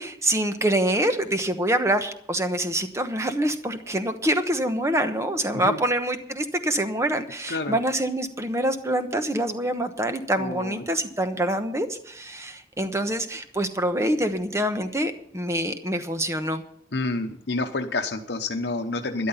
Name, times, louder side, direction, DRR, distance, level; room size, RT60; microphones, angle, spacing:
voice 1, 0.0-16.6, right 1 dB, 15° right, 8 dB, 1.0 m, -25 dB
voice 2, 10.4-10.8 16.9-19.3, left 2 dB, 75° left, 5 dB, 0.9 m, -29 dB
13.0 x 11.0 x 5.7 m, 0.66 s
head